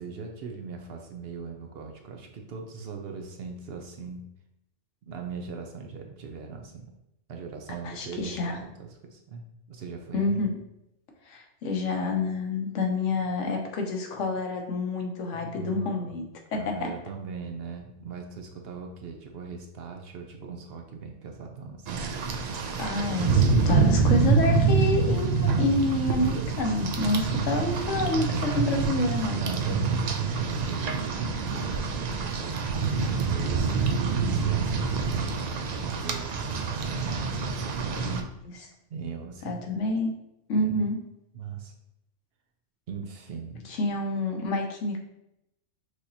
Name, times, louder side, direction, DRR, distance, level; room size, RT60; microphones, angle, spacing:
voice 1, 0.0-4.2 5.0-6.9 7.3-10.4 15.3-16.1 16.5-22.0 29.2-38.1 38.9-39.7 40.5-40.9 41.3-41.7 42.9-43.6, right 5 dB, 60° right, 3 dB, 0.8 m, -40 dB
voice 2, 7.8-8.6 10.1-10.6 11.3-16.2 16.5-16.9 22.8-29.4 38.0-38.7 39.4-40.1 40.5-41.0 43.7-45.0, left 2 dB, 80° left, 2 dB, 1.1 m, -28 dB
Rain, 21.9-38.2, right 5 dB, 75° right, 0.3 m, -26 dB
6.3 x 2.9 x 2.7 m, 0.83 s
omnidirectional pair, 1.2 m